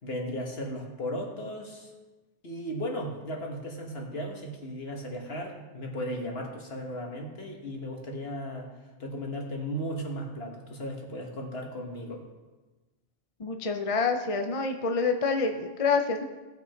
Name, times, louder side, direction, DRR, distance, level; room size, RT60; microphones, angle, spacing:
voice 1, 0.0-1.9 2.4-8.7 9.0-12.2, equal, 60° left, 0 dB, 1.9 m, -36 dB
voice 2, 13.4-16.2, left 4 dB, 35° left, 5 dB, 0.6 m, -27 dB
16.5 x 6.1 x 4.5 m, 1.2 s
omnidirectional pair, 1.2 m